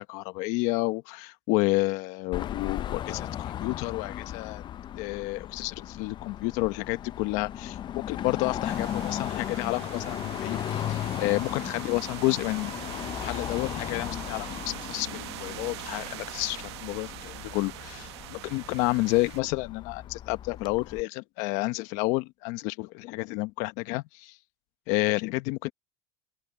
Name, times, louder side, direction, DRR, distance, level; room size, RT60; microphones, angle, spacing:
voice 1, 0.0-4.6 5.0-12.8 13.2-24.4 24.9-25.7, left 21 dB, 65° left, 1.1 m, -30 dB
Car passing by / Traffic noise roadway noise / Engine, 2.3-21.0, left 11 dB, 35° left, 0.5 m, -36 dB
sound 1, 8.6-19.4, right 18 dB, 85° right, 0.8 m, -42 dB
supercardioid pair, 110°, 14 cm